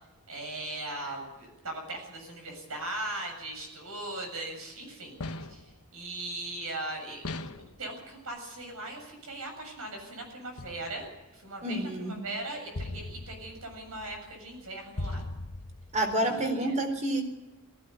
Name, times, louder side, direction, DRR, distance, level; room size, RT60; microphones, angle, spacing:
voice 1, 0.3-5.2 5.5-11.1 11.3-15.2 16.2-16.7, right 2 dB, 70° right, 3 dB, 7.5 m, -39 dB
sound 1, 5.2-5.8 7.2-7.8 10.6-11.2 12.7-16.2, left 2 dB, 75° left, 1.2 m, -40 dB
voice 2, 11.6-12.1 15.9-17.2, right 1 dB, 35° right, 5 dB, 4.1 m, -28 dB
19.0 x 16.0 x 9.9 m, 1.0 s
head